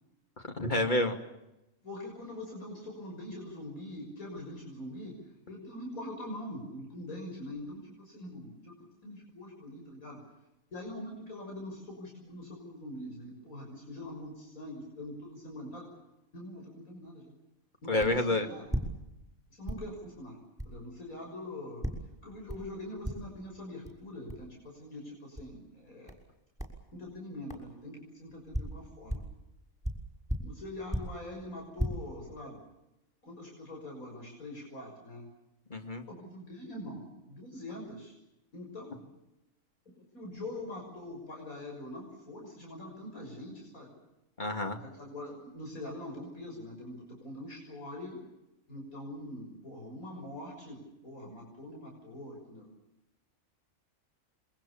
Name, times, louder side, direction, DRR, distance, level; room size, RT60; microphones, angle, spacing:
voice 1, 0.5-1.2 17.9-18.5 35.7-36.0 44.4-44.8, left 1 dB, 35° left, 4 dB, 2.7 m, -28 dB
voice 2, 1.8-8.8 9.0-10.3 10.7-15.9 16.3-17.3 17.8-18.8 19.5-21.9 22.2-26.1 26.9-29.2 30.4-32.6 33.2-35.3 36.1-38.1 38.5-39.1 39.8-44.0 44.8-48.2 48.7-52.7, left 1 dB, 85° left, 0 dB, 6.8 m, -43 dB
sound 1, 18.0-18.2 18.6-19.4 19.7-19.9 20.6-20.8 21.8-22.1 22.5-22.7 23.0-23.4 23.9-24.0 24.3-24.5 25.4-25.5 26.1-26.3 26.6-26.8 27.5-27.7 28.3-29.4 29.8-31.2 31.6-31.9, equal, ahead, 6.3 m, -36 dB
28.0 x 23.5 x 7.2 m, 0.91 s
omnidirectional pair, 1.4 m